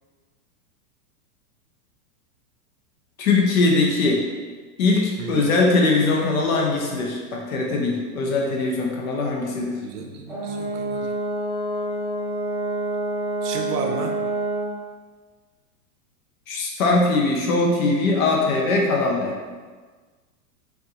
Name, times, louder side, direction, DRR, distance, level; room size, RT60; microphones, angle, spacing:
voice 1, 3.2-4.2 4.8-9.8 16.5-19.4, left 3 dB, 60° left, 0 dB, 0.8 m, -21 dB
voice 2, 9.8-11.1 13.4-14.1, right 4 dB, 75° right, 3 dB, 0.7 m, -32 dB
Brass instrument, 10.3-14.8, right 2 dB, 5° left, 1.0 m, -27 dB
4.4 x 2.7 x 2.7 m, 1.4 s
supercardioid pair, 155°, 46 cm